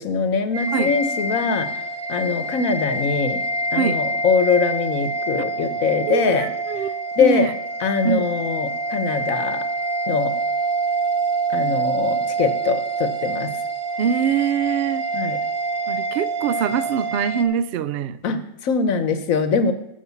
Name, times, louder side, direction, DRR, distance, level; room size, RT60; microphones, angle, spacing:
voice 1, 0.0-1.7 2.1-3.4 3.7-6.5 7.2-7.5 7.8-9.6 10.1-10.4 11.5-13.5 15.1-15.4 18.2-19.7, left 5 dB, 65° left, 1.2 m, -22 dB
sound 1, 0.5-17.4, right 2 dB, 45° right, 0.8 m, -26 dB
voice 2, 0.7-1.0 3.7-4.0 6.0-7.6 8.0-8.3 14.0-15.1 15.9-18.2, right 8 dB, 75° right, 0.5 m, -24 dB
14.0 x 5.3 x 7.0 m
omnidirectional pair, 1.6 m